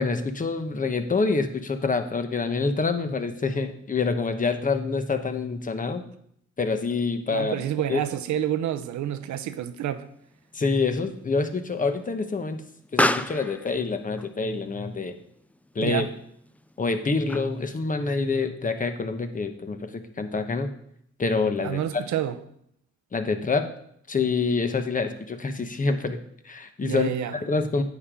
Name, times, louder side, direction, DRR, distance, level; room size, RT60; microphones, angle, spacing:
voice 1, 0.0-6.0 6.6-7.5 7.9-8.0 10.5-12.6 12.9-15.1 15.7-16.1 16.8-20.7 21.2-21.8 23.1-23.7 24.1-27.8, left 4 dB, 25° left, 1.1 m, -26 dB
voice 2, 7.3-10.1 15.8-16.1 21.6-22.4 26.8-27.4, right 10 dB, 70° right, 0.9 m, -28 dB
Explosion, 8.8-17.8, left 1 dB, 5° left, 0.4 m, -34 dB
9.8 x 8.7 x 3.8 m
cardioid pair, 90°, 30 cm